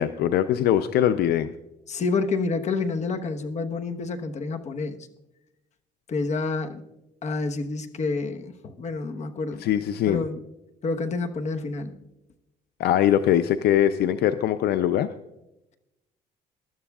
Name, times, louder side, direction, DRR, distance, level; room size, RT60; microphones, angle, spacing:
voice 1, 0.0-1.5 9.6-10.2 12.8-15.1, left 11 dB, 70° left, 12 dB, 0.5 m, -22 dB
voice 2, 1.9-5.0 6.1-6.8 7.2-9.6 10.1-10.4 10.8-11.9, left 3 dB, 45° left, 6 dB, 1.2 m, -28 dB
22.5 x 12.5 x 2.4 m, 0.92 s
cardioid pair, 110°, 17 cm